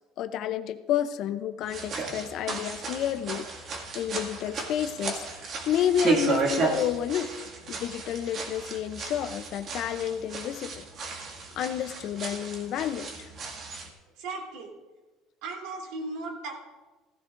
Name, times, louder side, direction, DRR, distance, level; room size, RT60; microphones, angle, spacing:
voice 1, 0.2-3.5 3.9-5.3 5.7-7.3 7.7-10.8 11.6-13.3, left 10 dB, 50° left, 9 dB, 0.6 m, -30 dB
sound 1, 1.6-13.9, right 4 dB, 40° right, 2.1 m, -33 dB
voice 2, 14.1-14.8 15.4-16.5, right 3 dB, 75° right, 0 dB, 3.2 m, -36 dB
16.0 x 15.5 x 2.6 m, 1.2 s
cardioid pair, 145°, 0 cm